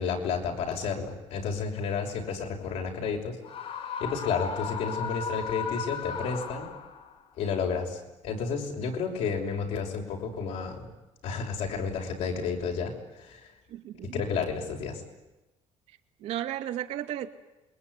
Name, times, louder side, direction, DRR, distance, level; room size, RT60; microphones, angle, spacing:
voice 1, 0.0-3.4 4.0-6.7 7.4-10.9 11.2-13.5 14.0-15.0, left 5 dB, 75° left, 2 dB, 6.1 m, -31 dB
Screaming, 3.4-7.1, left 6 dB, 60° left, 4.4 m, -35 dB
voice 2, 13.7-14.2 16.2-17.3, right 12 dB, 80° right, 5 dB, 2.5 m, -34 dB
27.5 x 22.0 x 9.7 m, 1.0 s
cardioid pair, 155°, 11 cm